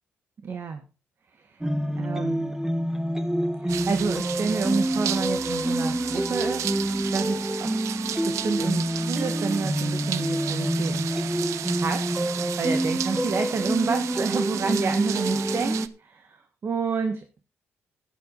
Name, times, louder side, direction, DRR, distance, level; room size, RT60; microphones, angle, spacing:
voice 1, 0.4-0.8 1.5-1.7 2.0-2.5 3.6-6.7 7.1-7.8 8.2-11.1 11.8-12.2 12.6-17.4, right 5 dB, 50° right, 7 dB, 1.7 m, -29 dB
sound 1, 1.6-15.9, equal, 10° right, 1.2 m, -27 dB
sound 2, 3.7-15.9, right 11 dB, 80° right, 0.7 m, -34 dB
12.0 x 10.5 x 4.0 m, 0.30 s
cardioid pair, 70°, 5 cm